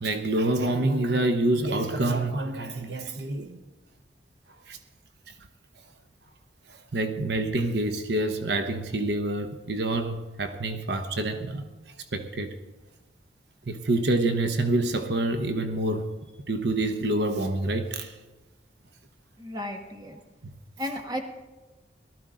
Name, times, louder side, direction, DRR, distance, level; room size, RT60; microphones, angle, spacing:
voice 1, 0.0-3.6 4.7-4.8 6.9-11.6 12.1-12.5 13.7-16.1 16.5-18.1, right 2 dB, 75° right, 0.9 m, -27 dB
voice 2, 19.4-20.2 20.8-21.2, left 1 dB, 25° right, 1.4 m, -34 dB
18.5 x 12.5 x 3.8 m
head